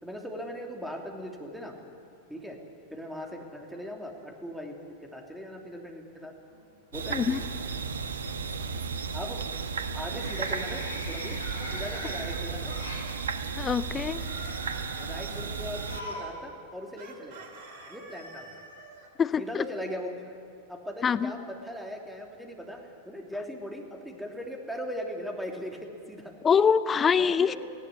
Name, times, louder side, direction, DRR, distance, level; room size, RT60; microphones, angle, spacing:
voice 1, 0.0-1.8 2.3-2.6 2.9-6.3 6.9-7.4 9.1-9.4 9.9-11.4 11.7-12.8 15.0-17.5 17.9-18.6 19.4-20.2 20.7-26.3 27.1-27.6, equal, ahead, 1 dB, 2.9 m, -39 dB
sound 1, 6.5-7.1 7.5-7.9 10.0-13.1 13.9-16.3 16.6-16.7 17.8-17.9, left 1 dB, 75° left, 5.2 m, -42 dB
sound 2, 6.9-16.0, right 5 dB, 70° right, 1.2 m, -34 dB
Chicken rooster, 12.8-13.6 17.0-19.1, right 2 dB, 50° right, 2.8 m, -48 dB
voice 2, 13.6-14.2 19.2-19.6 21.0-21.3 26.4-27.5, left 6 dB, 20° left, 14 dB, 0.7 m, -24 dB
19.0 x 16.0 x 9.9 m, 2.4 s
figure-of-eight pair, 90°, 0 cm